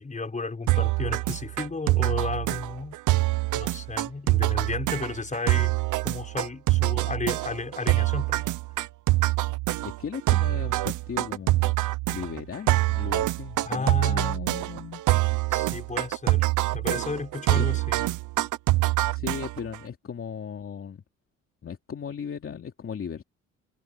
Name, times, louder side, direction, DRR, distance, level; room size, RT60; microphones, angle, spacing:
voice 1, 0.0-3.0 3.5-5.7 6.0-8.5 13.7-14.4 15.5-16.4 16.7-18.0, left 3 dB, 25° left, 5.6 m, -33 dB
sound 1, 0.7-19.8, right 18 dB, 85° right, 0.9 m, -25 dB
voice 2, 9.8-11.8 12.1-15.0 16.3-16.4 17.5-17.7 19.1-21.0 21.6-23.2, left 7 dB, 45° left, 2.7 m, -37 dB
cardioid pair, 90°, 30 cm